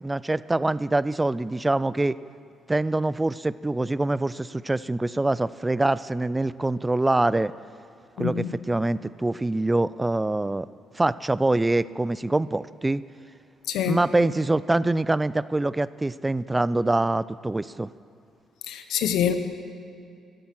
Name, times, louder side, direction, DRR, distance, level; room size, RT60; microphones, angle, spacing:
voice 1, 0.0-2.2 2.7-7.5 8.2-10.7 10.9-13.0 13.9-17.9, right 2 dB, 15° right, 18 dB, 0.3 m, -24 dB
voice 2, 8.2-8.6 13.7-14.0 18.7-19.3, left 9 dB, 85° left, 9 dB, 1.0 m, -25 dB
13.0 x 12.5 x 6.0 m, 2.5 s
cardioid pair, 90°, 0 cm